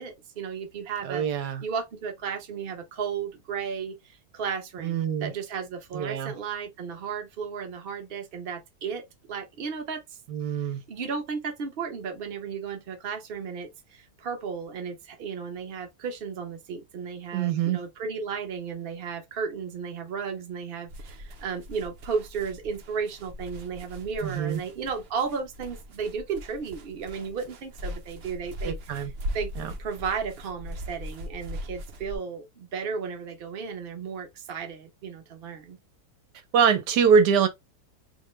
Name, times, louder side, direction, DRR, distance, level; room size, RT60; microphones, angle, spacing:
voice 1, 0.0-10.0 10.9-29.5 29.8-35.8, right 6 dB, 45° right, 0.9 m, -34 dB
voice 2, 1.0-1.6 4.8-5.3 5.9-6.3 10.3-10.8 17.3-17.8 24.2-24.6 28.6-29.1 29.6-29.7 36.5-37.5, right 6 dB, 80° right, 1.3 m, -24 dB
sound 1, 20.9-32.2, equal, 65° right, 0.6 m, -40 dB
5.2 x 2.2 x 3.1 m
omnidirectional pair, 1.8 m